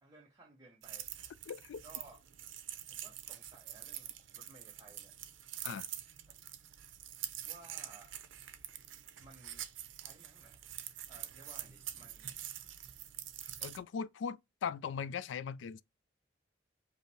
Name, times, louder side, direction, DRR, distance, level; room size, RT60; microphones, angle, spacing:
voice 1, 0.0-1.1 1.8-2.2 2.9-5.1 6.7-6.8 7.4-8.1 9.2-9.7 10.0-10.7 11.1-12.4, right 2 dB, 20° right, 0.7 m, -58 dB
sound 1, 0.8-13.8, right 11 dB, 80° right, 0.5 m, -46 dB
voice 2, 1.5-1.8 5.6-5.9 13.6-15.8, left 6 dB, 75° left, 0.3 m, -39 dB
5.5 x 2.0 x 4.6 m
head